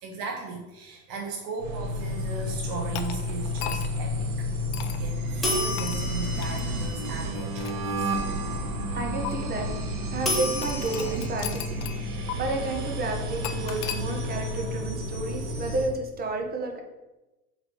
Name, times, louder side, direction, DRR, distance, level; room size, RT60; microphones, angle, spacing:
voice 1, 0.0-4.5 4.8-8.1, right 4 dB, 45° right, 0 dB, 1.1 m, -37 dB
sound 1, 1.6-15.9, equal, 60° right, 1.4 m, -31 dB
sound 2, 2.9-4.1 4.7-5.0 5.8-6.0 6.4-6.6 7.3-8.5 9.2-9.3 10.6-12.0 12.3-12.4 13.4-14.0, left 12 dB, 40° left, 0.6 m, -37 dB
sound 3, 5.4-7.6 10.3-11.1, equal, ahead, 1.7 m, -31 dB
voice 2, 8.9-9.7 10.1-16.8, right 3 dB, 20° right, 2 dB, 1.2 m, -31 dB
7.7 x 3.6 x 3.8 m, 1.1 s
figure-of-eight pair, 85°, 47 cm